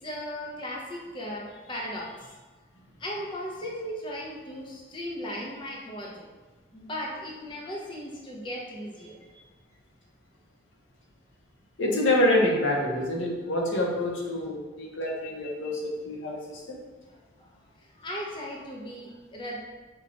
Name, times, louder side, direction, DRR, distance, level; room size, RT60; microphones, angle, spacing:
voice 1, 0.0-2.3 3.0-6.3 6.7-9.2 17.1-19.6, equal, 25° left, -4 dB, 0.5 m, -37 dB
voice 2, 11.8-16.8, left 1 dB, 70° left, -1 dB, 0.8 m, -26 dB
4.3 x 2.3 x 3.9 m, 1.3 s
head